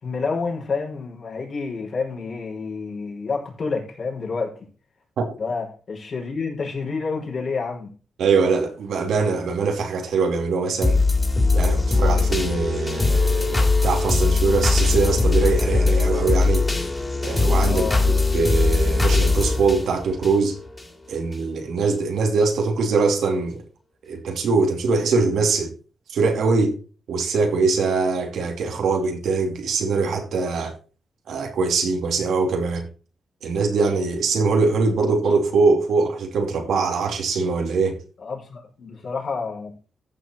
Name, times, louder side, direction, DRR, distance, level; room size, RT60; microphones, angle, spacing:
voice 1, 0.0-4.6 5.4-7.9 17.7-18.0 38.2-39.7, left 4 dB, 55° left, 5.4 m, -29 dB
voice 2, 8.2-11.0 11.5-16.6 17.2-20.5 21.1-23.6 24.0-25.7 26.1-26.8 27.1-30.7 31.3-32.9 33.4-38.0, right 4 dB, 80° right, 2.7 m, -22 dB
sound 1, 10.8-20.9 21.3-21.4, left 3 dB, 20° left, 3.4 m, -20 dB
14.5 x 6.3 x 4.3 m
cardioid pair, 100°, 0 cm